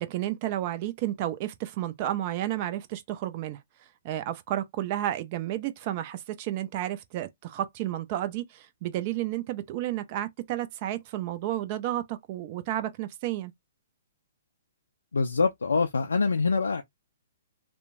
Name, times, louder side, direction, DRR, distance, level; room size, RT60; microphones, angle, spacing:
voice 1, 0.0-3.6 4.0-13.5, right 13 dB, 40° right, 0.5 m, -31 dB
voice 2, 15.1-16.8, left 4 dB, 75° left, 0.4 m, -25 dB
2.9 x 2.1 x 2.5 m
figure-of-eight pair, 120°, 0 cm